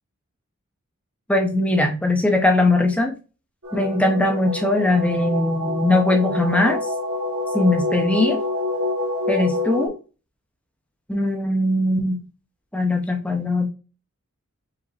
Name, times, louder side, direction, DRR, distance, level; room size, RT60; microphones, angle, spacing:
voice 1, 1.3-3.1 3.7-6.8 7.5-8.4 9.3-9.9 11.1-12.2 12.7-13.7, left 2 dB, 5° left, 3 dB, 0.7 m, -20 dB
sound 1, 3.6-9.9, left 2 dB, 65° right, 1.4 m, -27 dB
4.8 x 3.5 x 2.8 m, 0.33 s
head